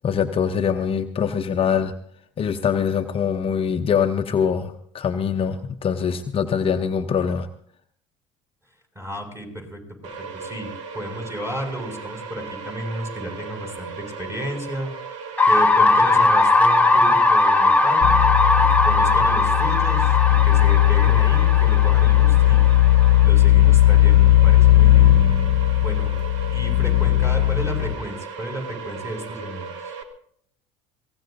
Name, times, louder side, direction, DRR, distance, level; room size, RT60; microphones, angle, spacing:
voice 1, 0.0-1.9 2.4-7.5, left 7 dB, 35° left, 6 dB, 0.8 m, -23 dB
voice 2, 9.0-14.9 15.4-18.1 18.8-22.7 23.2-25.2 25.8-26.1 26.5-29.9, equal, 15° right, 2 dB, 7.0 m, -33 dB
sound 1, 10.0-30.0, right 5 dB, 75° right, 1.4 m, -36 dB
sound 2, 15.4-23.2, left 2 dB, 10° left, 1.1 m, -19 dB
sound 3, 18.0-27.9, left 13 dB, 70° left, 0.9 m, -17 dB
23.0 x 18.0 x 2.7 m, 0.65 s
hypercardioid pair, 75°, 16 cm